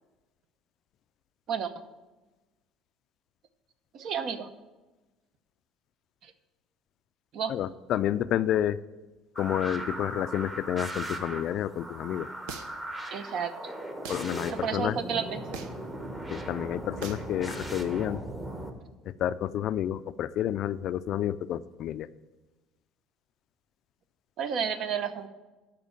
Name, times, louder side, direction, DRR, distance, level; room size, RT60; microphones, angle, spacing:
voice 1, 1.5-1.8 3.9-4.5 6.2-6.3 7.3-7.5 13.1-13.7 14.5-15.6 24.4-25.3, right 7 dB, 55° right, 10 dB, 0.8 m, -32 dB
voice 2, 7.5-8.8 9.4-12.3 14.1-15.0 16.3-18.2 19.0-22.1, left 11 dB, 55° left, 15 dB, 0.4 m, -30 dB
sound 1, 9.4-18.7, right 1 dB, 20° right, 1.2 m, -38 dB
sound 2, 12.5-12.9 14.0-14.3 15.5-15.9 17.0-17.3, right 6 dB, 85° right, 0.9 m, -40 dB
12.5 x 4.5 x 7.3 m, 1.2 s
cardioid pair, 125°, 0 cm